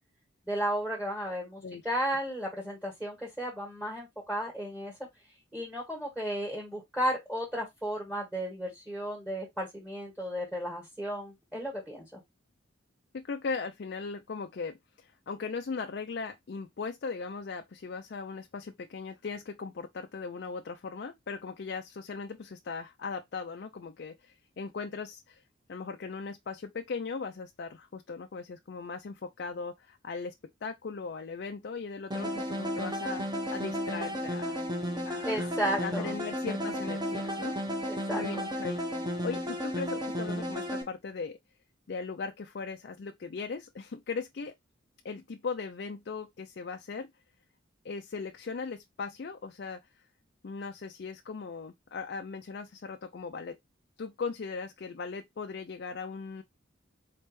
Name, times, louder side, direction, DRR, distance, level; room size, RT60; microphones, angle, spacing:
voice 1, 0.5-4.9 5.5-12.2 35.2-36.1 37.9-38.4, equal, 5° right, 1.8 m, -34 dB
voice 2, 13.1-25.4 25.7-30.3 30.6-34.6 35.0-35.5 35.8-37.6 38.1-38.8 39.2-41.4 41.9-44.5 45.0-47.1 47.8-49.8 50.4-53.6 54.0-56.4, left 4 dB, 55° left, 0.4 m, -38 dB
sound 1, 32.1-40.8, equal, 20° right, 1.2 m, -33 dB
4.2 x 3.3 x 3.1 m
head